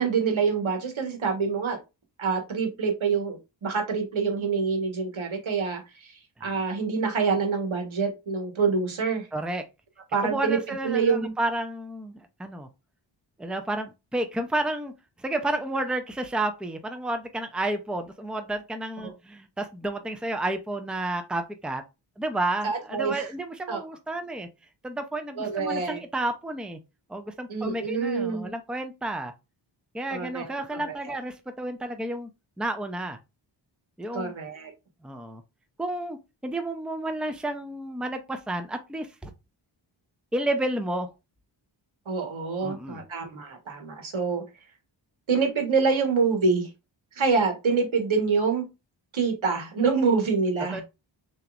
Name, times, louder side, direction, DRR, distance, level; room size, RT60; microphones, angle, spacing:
voice 1, 0.0-1.8 2.2-6.1 6.4-9.3 10.1-10.6 10.8-11.3 19.0-19.1 22.6-23.3 23.7-23.8 25.4-26.0 27.5-28.5 30.1-31.0 34.1-34.7 42.0-44.4 45.3-46.7 47.1-48.7 49.1-50.8, right 5 dB, 80° right, 1.6 m, -26 dB
voice 2, 9.3-9.6 10.2-12.7 13.4-14.9 15.2-21.8 22.2-24.5 24.8-26.8 27.1-29.3 29.9-32.3 32.6-33.2 34.0-34.3 35.0-35.4 35.8-36.2 36.4-39.3 40.3-41.1 42.6-43.0 50.7-50.8, right 1 dB, ahead, 0.7 m, -31 dB
6.5 x 3.0 x 2.5 m
wide cardioid pair, 85°, 47 cm